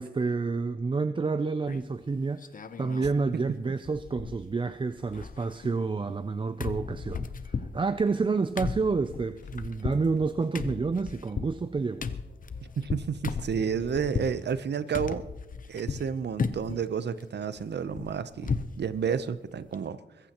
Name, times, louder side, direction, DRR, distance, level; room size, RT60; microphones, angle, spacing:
voice 1, 0.0-2.4 2.8-12.1, right 4 dB, 25° right, 0.4 m, -29 dB
sound 1, 1.7-2.0 2.4-3.2 3.5-3.6 3.8-4.7 5.0-6.3 6.6-14.4 14.9-16.1 16.4-16.8 17.2-18.8 19.1-19.2 19.6-19.7, left 5 dB, 50° left, 0.7 m, -35 dB
sound 2, 4.8-14.9, left 3 dB, 85° left, 2.7 m, -55 dB
voice 2, 12.8-15.2 15.7-20.0, right 7 dB, 70° right, 0.7 m, -31 dB
22.5 x 15.0 x 3.0 m
wide cardioid pair, 105°, 18 cm